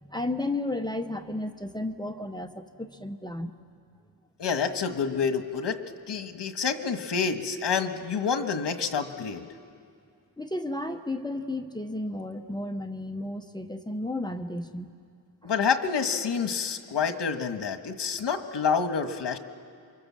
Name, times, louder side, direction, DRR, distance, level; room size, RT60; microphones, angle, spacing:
voice 1, 0.0-3.5 10.4-14.9 15.4-15.5, left 1 dB, 10° left, 6 dB, 0.7 m, -33 dB
voice 2, 4.4-5.8 6.1-9.5 15.4-19.4, left 6 dB, 80° left, 7 dB, 1.5 m, -28 dB
28.0 x 24.5 x 7.4 m, 2.3 s
wide cardioid pair, 175°, 41 cm